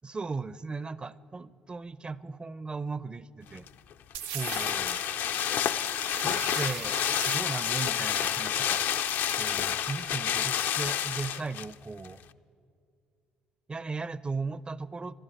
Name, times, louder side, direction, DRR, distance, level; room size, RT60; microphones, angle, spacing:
voice 1, 0.0-3.7 4.3-5.1 6.2-7.0 7.2-8.8 9.4-12.2 13.7-15.1, right 4 dB, 25° right, 18 dB, 0.6 m, -37 dB
sound 1, 3.6-11.7 12.1-12.2, left 10 dB, 65° left, 0.5 m, -29 dB
sound 2, 4.1-10.7, right 10 dB, 75° right, 0.5 m, -42 dB
12.5 x 12.5 x 9.0 m, 2.3 s
hypercardioid pair, 55°, 4 cm